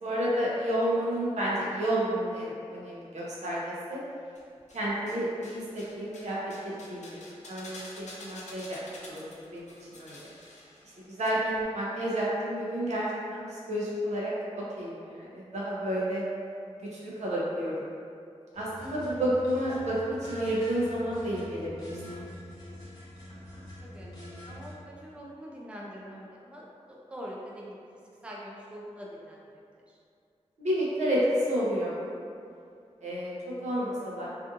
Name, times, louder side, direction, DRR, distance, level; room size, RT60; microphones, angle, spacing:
voice 1, 0.0-4.0 4.7-6.4 6.6-7.2 7.5-8.8 9.1-10.2 11.1-16.2 16.9-17.9 18.5-22.2 30.6-31.9 33.0-34.3, right 1 dB, 80° right, -6 dB, 0.6 m, -30 dB
sound 1, 4.3-5.2 5.4-11.3 11.5-11.6, left 2 dB, 80° left, 0.5 m, -48 dB
sound 2, 18.5-24.7, left 1 dB, 35° left, 0.9 m, -45 dB
voice 2, 24.5-26.6 27.1-29.4, equal, 10° right, -4 dB, 0.4 m, -43 dB
2.5 x 2.5 x 2.5 m, 2.4 s
wide cardioid pair, 95°, 12 cm